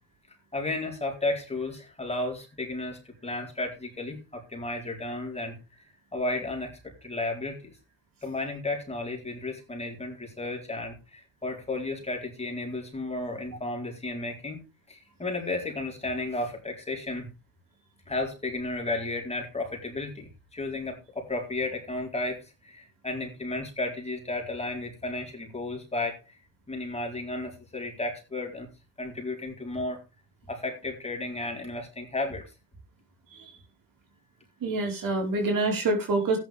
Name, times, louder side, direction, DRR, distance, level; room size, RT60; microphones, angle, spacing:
voice 1, 0.5-5.9 6.1-7.7 8.2-14.6 14.9-17.3 18.1-26.4 26.7-28.7 29.0-30.0 30.5-32.4, left 2 dB, 15° left, 1 dB, 4.4 m, -33 dB
voice 2, 34.6-36.4, right 2 dB, 55° right, 2 dB, 4.8 m, -26 dB
13.5 x 10.5 x 3.6 m, 0.28 s
cardioid pair, 90°, 40 cm